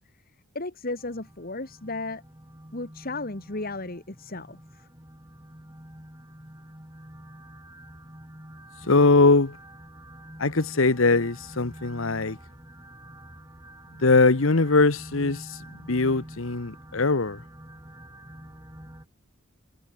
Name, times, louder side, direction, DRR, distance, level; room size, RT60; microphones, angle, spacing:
voice 1, 0.5-2.2 2.7-4.9, left 2 dB, 45° left, 2.2 m, -34 dB
sound 1, 1.0-19.1, right 1 dB, 15° right, 4.0 m, -46 dB
voice 2, 8.8-9.6 10.4-12.4 14.0-15.6 15.9-17.4, left 3 dB, 70° left, 1.2 m, -21 dB
head